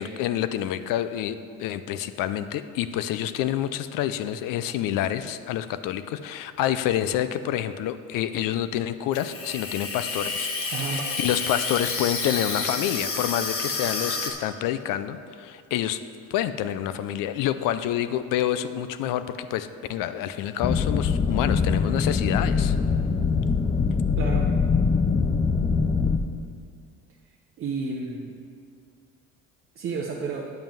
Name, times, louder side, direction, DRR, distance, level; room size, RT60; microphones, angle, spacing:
voice 1, 0.0-10.7 11.2-16.0 16.3-22.7, left 11 dB, 75° left, 12 dB, 0.6 m, -28 dB
Water tap faucet / Sink (filling or washing), 9.1-14.3, left 4 dB, 45° left, 1.3 m, -30 dB
voice 2, 10.7-11.1 24.2-24.5 27.6-28.3 29.8-30.5, right 4 dB, 40° right, -1 dB, 0.8 m, -31 dB
sound 1, 20.6-26.2, left 5 dB, 15° left, 0.4 m, -23 dB
9.1 x 5.4 x 7.6 m, 2.3 s
cardioid pair, 150°, 33 cm